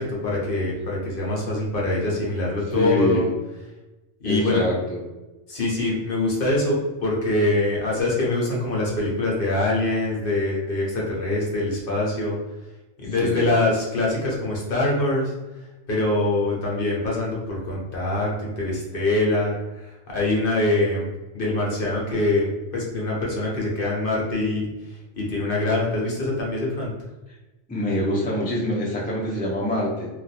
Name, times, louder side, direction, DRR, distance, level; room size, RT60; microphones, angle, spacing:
voice 1, 0.0-3.3 4.2-4.6 5.5-12.4 13.0-15.3 15.9-26.9, left 2 dB, 50° left, -4 dB, 0.9 m, -24 dB
voice 2, 2.7-3.2 4.2-5.0 13.2-13.5 27.7-30.1, equal, 10° left, -4 dB, 0.4 m, -25 dB
2.5 x 2.3 x 4.1 m, 1.1 s
omnidirectional pair, 1.3 m